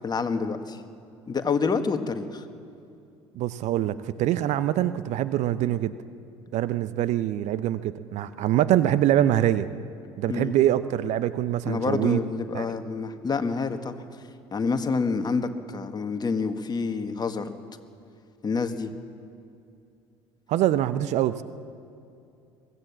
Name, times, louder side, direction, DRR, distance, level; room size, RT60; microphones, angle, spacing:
voice 1, 0.0-0.8 1.3-2.5 10.3-10.6 11.7-14.0 14.5-17.5 18.4-18.9, left 4 dB, 30° left, 8 dB, 1.7 m, -27 dB
voice 2, 3.3-5.9 6.5-9.7 10.2-12.2 12.5-12.7 20.5-21.4, right 12 dB, 50° right, 14 dB, 0.7 m, -24 dB
23.0 x 17.0 x 7.4 m, 2.6 s
figure-of-eight pair, 55°, 15 cm